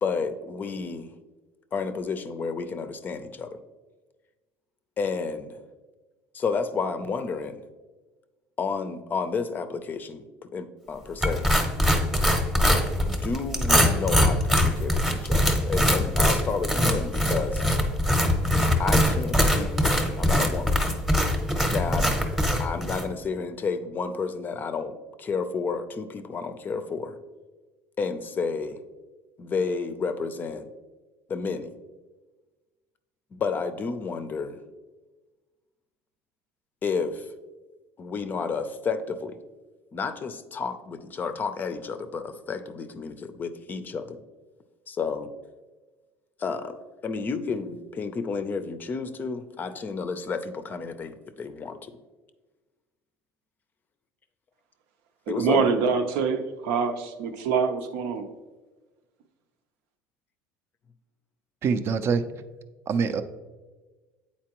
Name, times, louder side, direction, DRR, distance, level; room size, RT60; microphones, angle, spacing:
voice 1, 0.0-1.1 1.7-3.6 5.0-5.6 6.3-7.6 8.6-10.2 10.5-11.5 13.1-17.6 18.8-20.8 21.7-22.2 22.6-27.2 28.0-28.8 29.4-30.7 31.3-31.7 33.3-34.6 36.8-37.3 38.0-39.4 39.9-44.2 44.9-45.3 46.4-46.8 47.0-51.9 55.3-55.7, left 5 dB, 30° left, 10 dB, 0.5 m, -31 dB
sound 1, 11.2-23.1, equal, 5° right, 0.8 m, -23 dB
voice 2, 55.3-58.3, right 5 dB, 80° right, 6 dB, 0.6 m, -25 dB
voice 3, 61.6-62.2 62.9-63.2, right 5 dB, 45° right, 11 dB, 0.5 m, -24 dB
8.4 x 4.3 x 3.0 m, 1.2 s
supercardioid pair, 115°, 6 cm